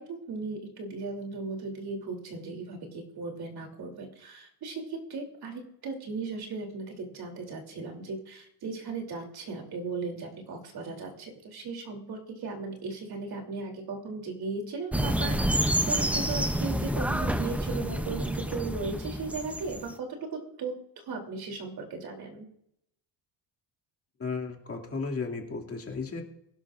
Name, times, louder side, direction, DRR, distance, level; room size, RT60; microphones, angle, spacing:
voice 1, 0.0-20.3 20.6-22.5, right 3 dB, 55° right, 2 dB, 3.0 m, -37 dB
sound 1, 14.9-19.9, right 1 dB, 5° right, 0.5 m, -28 dB
voice 2, 24.2-26.2, left 4 dB, 30° left, 0 dB, 2.3 m, -34 dB
23.0 x 11.5 x 2.5 m, 0.76 s
cardioid pair, 145°, 44 cm